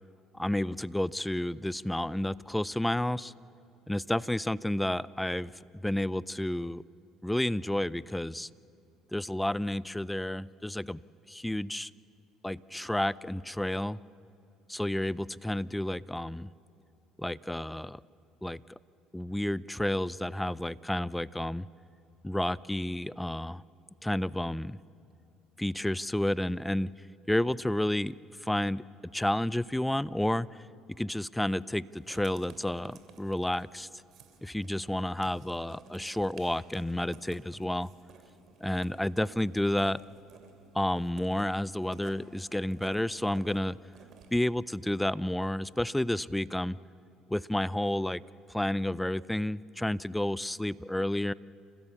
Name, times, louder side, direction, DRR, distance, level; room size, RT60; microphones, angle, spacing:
voice 1, 0.3-3.3 3.9-6.8 7.2-8.5 9.1-11.0 11.3-11.9 12.4-14.0 14.7-16.5 17.2-18.0 18.4-18.8 19.1-21.7 22.2-23.6 24.0-24.8 25.6-26.9 27.3-30.7 31.0-33.9 34.4-37.9 38.6-40.0 40.7-43.8 44.3-46.8 47.3-48.2 48.5-51.3, left 1 dB, 5° left, 20 dB, 0.4 m, -31 dB
Writing, 31.9-44.4, right 5 dB, 60° right, 2.6 m, -55 dB
29.0 x 15.0 x 7.1 m, 2.7 s
supercardioid pair, 80°, 0 cm